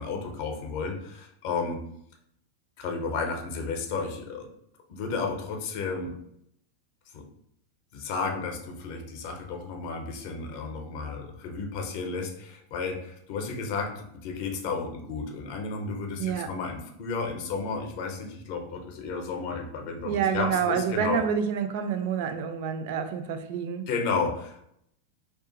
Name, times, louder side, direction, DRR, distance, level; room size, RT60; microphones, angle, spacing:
voice 1, 0.0-1.9 2.8-4.5 4.9-6.2 7.1-7.3 7.9-21.2 23.9-24.6, left 4 dB, 45° left, 3 dB, 0.6 m, -32 dB
voice 2, 20.0-23.9, right 7 dB, 50° right, 8 dB, 0.3 m, -28 dB
2.4 x 2.4 x 3.7 m, 0.74 s
figure-of-eight pair, 90°, 0 cm